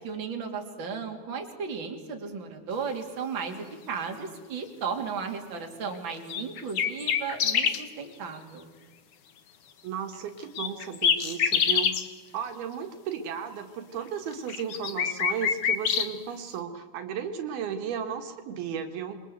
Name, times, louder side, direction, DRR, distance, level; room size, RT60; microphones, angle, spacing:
voice 1, 0.0-8.7, right 5 dB, 30° right, 2 dB, 3.4 m, -35 dB
sound 1, 6.3-7.8 10.6-12.1 14.3-16.1, left 7 dB, 55° left, 1.6 m, -26 dB
voice 2, 9.8-11.9 12.3-19.2, right 7 dB, 75° right, 5 dB, 3.5 m, -34 dB
27.5 x 23.0 x 8.1 m, 1.4 s
omnidirectional pair, 4.4 m